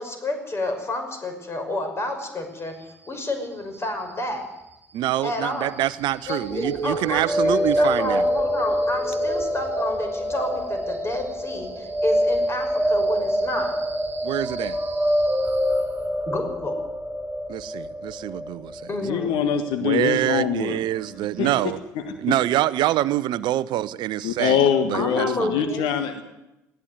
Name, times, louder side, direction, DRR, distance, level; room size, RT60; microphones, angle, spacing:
voice 1, 0.0-2.7 3.1-4.5 5.2-5.7 6.3-13.7 16.3-16.7 18.9-19.4 24.9-25.9, left 1 dB, 30° left, 6 dB, 5.8 m, -30 dB
voice 2, 4.9-8.2 14.2-14.8 17.5-18.8 19.8-21.8 22.2-25.6, right 14 dB, 55° right, 18 dB, 0.7 m, -25 dB
sound 1, 6.5-20.4, equal, 20° right, 4.7 m, -25 dB
voice 3, 19.0-20.8 21.4-21.5 22.0-22.4 24.2-26.2, left 8 dB, 60° left, 8 dB, 1.7 m, -24 dB
19.5 x 15.0 x 9.5 m, 0.93 s
figure-of-eight pair, 55°, 9 cm